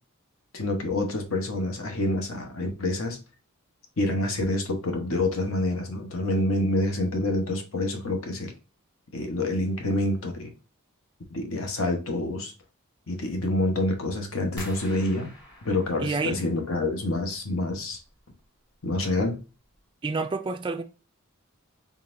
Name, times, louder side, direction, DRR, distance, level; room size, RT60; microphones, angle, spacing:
voice 1, 0.5-3.2 4.0-8.5 9.1-10.5 11.3-12.5 13.1-15.3 15.6-18.0 18.8-19.4, left 1 dB, 65° left, 1.0 m, -27 dB
sound 1, 14.6-17.4 17.7-18.4 18.8-19.2 19.6-19.8, left 1 dB, 15° left, 1.4 m, -46 dB
voice 2, 16.0-16.4 20.0-20.8, right 4 dB, 20° right, 0.3 m, -28 dB
3.9 x 3.5 x 2.6 m
head